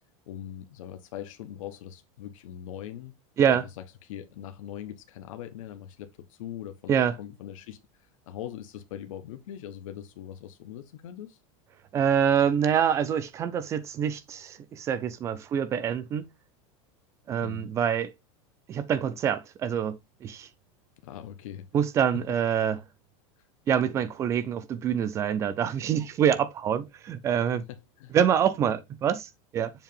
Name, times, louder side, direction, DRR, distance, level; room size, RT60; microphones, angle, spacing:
voice 1, 0.3-3.1 3.5-3.6 4.0-11.4 17.4-17.7 21.0-21.7 26.3-26.4 27.7-28.2, left 10 dB, 85° left, 1.0 m, -41 dB
voice 2, 11.9-16.3 17.3-18.1 18.7-20.5 21.7-22.8 23.7-27.6 28.1-29.7, right 8 dB, 15° right, 0.4 m, -26 dB
7.3 x 2.8 x 5.3 m
supercardioid pair, 180°, 17 cm